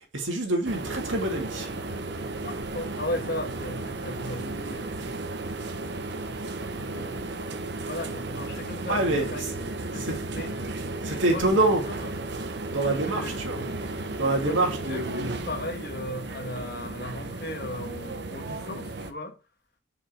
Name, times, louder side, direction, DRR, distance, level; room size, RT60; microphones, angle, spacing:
voice 1, 0.1-1.7 8.9-9.5 10.0-10.2 11.0-11.8 12.7-13.6 14.2-15.4, right 2 dB, 90° right, 2.5 m, -26 dB
sound 1, 0.6-19.1, right 2 dB, 65° right, 0.9 m, -34 dB
voice 2, 2.4-5.2 6.9-7.5 7.8-9.4 9.8-10.5 11.3-11.6 11.9-12.1 13.0-13.7 14.4-19.4, left 1 dB, 55° left, 1.7 m, -36 dB
7.9 x 5.8 x 4.6 m
head